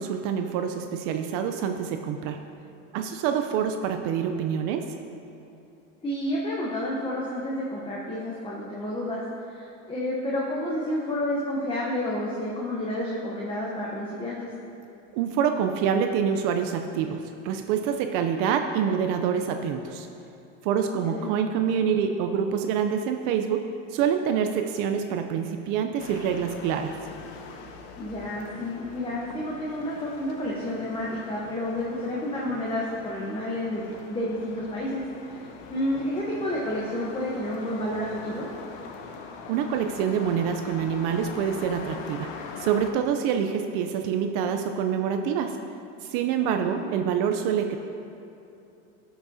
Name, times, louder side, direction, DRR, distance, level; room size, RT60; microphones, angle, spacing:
voice 1, 0.0-2.4 2.9-4.9 15.1-20.1 20.6-26.9 39.5-42.3 42.6-45.6 46.0-47.8, right 7 dB, 60° right, 6 dB, 0.5 m, -26 dB
voice 2, 6.0-14.5 21.0-21.3 28.0-35.4 35.7-38.5 46.5-46.7, left 1 dB, 15° left, -5 dB, 0.9 m, -30 dB
sound 1, 26.0-42.9, left 5 dB, 70° left, 0.9 m, -42 dB
12.5 x 6.0 x 2.7 m, 2.8 s
supercardioid pair, 125°, 36 cm